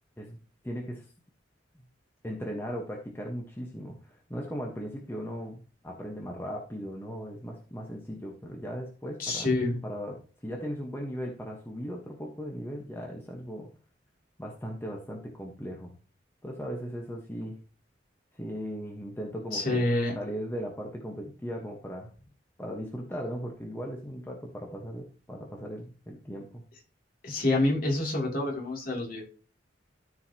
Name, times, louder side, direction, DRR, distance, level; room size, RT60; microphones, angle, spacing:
voice 1, 0.6-1.0 2.2-9.5 9.8-13.7 14.4-15.9 16.4-17.6 18.3-19.9 20.1-22.1 22.6-26.6, equal, 15° left, 0 dB, 1.2 m, -38 dB
voice 2, 9.2-9.8 19.5-20.1 27.2-29.3, left 2 dB, 50° left, -3 dB, 3.0 m, -27 dB
13.5 x 4.8 x 2.9 m, 0.37 s
head